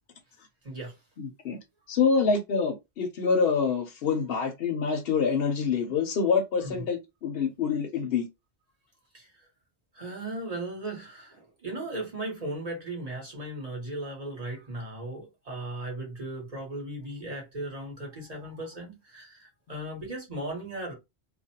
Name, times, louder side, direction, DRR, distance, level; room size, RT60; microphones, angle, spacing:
voice 1, 0.6-1.0 6.6-6.9 9.1-9.5 9.9-20.9, right 1 dB, 40° right, 0.9 m, -37 dB
voice 2, 1.2-1.6 1.9-8.3, left 5 dB, 65° left, 0.8 m, -26 dB
2.4 x 2.1 x 2.7 m
omnidirectional pair, 1.1 m